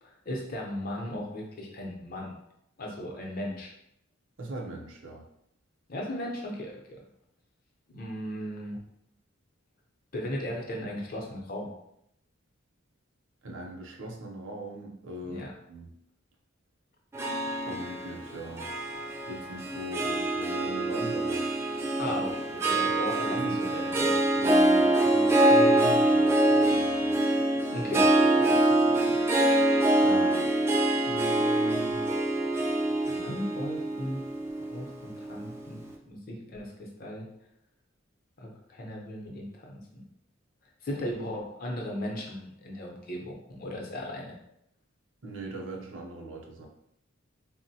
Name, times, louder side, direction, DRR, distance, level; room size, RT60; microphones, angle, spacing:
voice 1, 0.0-2.3 2.8-3.7 5.9-7.0 7.9-8.8 10.1-11.7 15.3-15.5 22.0-24.1 27.7-28.5 28.9-29.2 30.0-30.5 31.0-32.1 33.1-34.2 34.7-37.3 38.4-40.0 40.8-44.3, left 1 dB, 45° left, -1 dB, 0.7 m, -37 dB
voice 2, 4.4-5.2 13.4-15.9 17.7-18.7 19.3-21.5 22.0-22.3 23.3-23.6 24.3-27.1 45.2-46.7, right 1 dB, 65° right, 0 dB, 0.6 m, -39 dB
Harp, 17.1-35.6, right 1 dB, 15° right, 0.3 m, -25 dB
3.6 x 2.1 x 2.7 m, 0.77 s
head